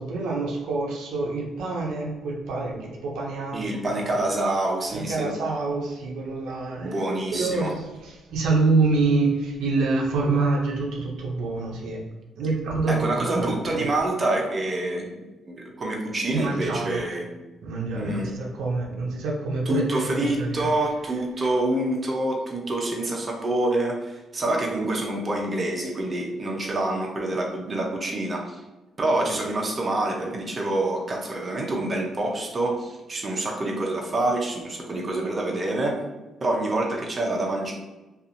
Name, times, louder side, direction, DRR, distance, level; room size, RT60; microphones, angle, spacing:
voice 1, 0.0-4.1 4.9-7.0 7.3-12.1 12.4-13.9 16.3-17.0 17.6-20.7 21.4-21.5, right 3 dB, 85° right, -2 dB, 0.6 m, -26 dB
voice 2, 3.5-5.3 6.8-7.7 12.9-17.3 17.9-18.3 19.7-28.6 29.0-36.0 36.4-37.7, right 1 dB, 30° right, -1 dB, 0.6 m, -26 dB
2.7 x 2.4 x 2.6 m, 1.1 s
cardioid pair, 90°, 0 cm